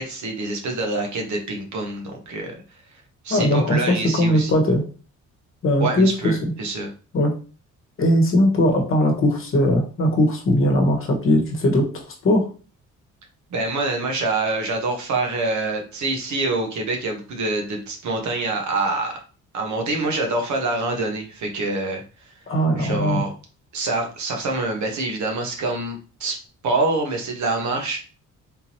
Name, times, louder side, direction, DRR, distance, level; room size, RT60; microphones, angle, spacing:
voice 1, 0.0-2.6 3.2-4.6 5.8-6.9 13.5-19.1 19.5-22.0 22.8-23.3 23.7-26.4 26.6-28.0, right 2 dB, 70° right, 2 dB, 1.1 m, -25 dB
voice 2, 3.3-4.8 5.6-6.5 7.1-7.3 8.0-12.5 22.5-23.2, left 1 dB, 45° left, 2 dB, 1.1 m, -19 dB
3.6 x 2.8 x 2.9 m, 0.37 s
cardioid pair, 90°, 30 cm